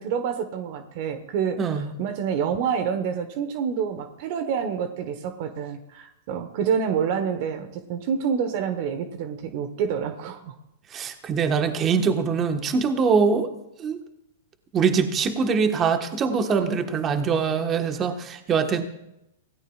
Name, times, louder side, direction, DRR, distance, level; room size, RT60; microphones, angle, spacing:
voice 1, 0.0-10.5, right 7 dB, 55° right, 10 dB, 1.2 m, -28 dB
voice 2, 1.6-1.9 10.9-13.5 13.8-14.0 14.7-18.9, right 5 dB, 30° right, 7 dB, 1.4 m, -23 dB
25.0 x 17.0 x 2.5 m, 0.84 s
hypercardioid pair, 110°, 0 cm